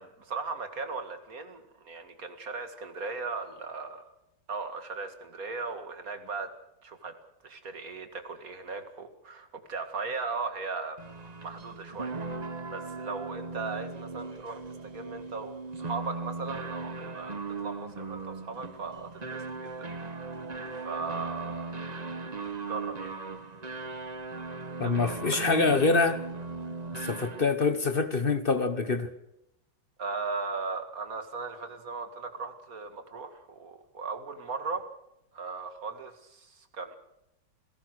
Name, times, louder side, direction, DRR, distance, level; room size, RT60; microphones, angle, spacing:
voice 1, 0.0-4.1 4.5-6.5 6.8-7.1 7.4-12.1 12.7-20.2 20.7-21.9 22.6-23.1 24.8-25.4 30.0-34.9 35.3-36.9, right 4 dB, 50° right, 2.4 m, -38 dB
sound 1, 11.0-27.7, right 3 dB, 25° right, 1.1 m, -38 dB
voice 2, 24.8-26.2 26.9-29.1, left 4 dB, 35° left, 1.1 m, -25 dB
29.0 x 17.0 x 6.3 m
omnidirectional pair, 2.0 m